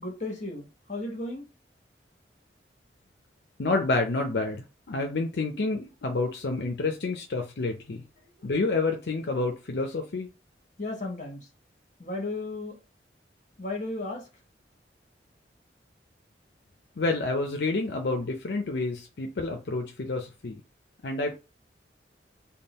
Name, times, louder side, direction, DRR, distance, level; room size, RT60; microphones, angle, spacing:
voice 1, 0.0-1.4 8.4-8.5 10.8-11.5 12.0-12.8 13.6-14.3, left 2 dB, 45° left, 1.2 m, -34 dB
voice 2, 3.6-8.0 8.4-10.3 17.0-20.6 21.0-21.3, left 3 dB, 70° left, 0.5 m, -29 dB
3.6 x 2.2 x 4.1 m
head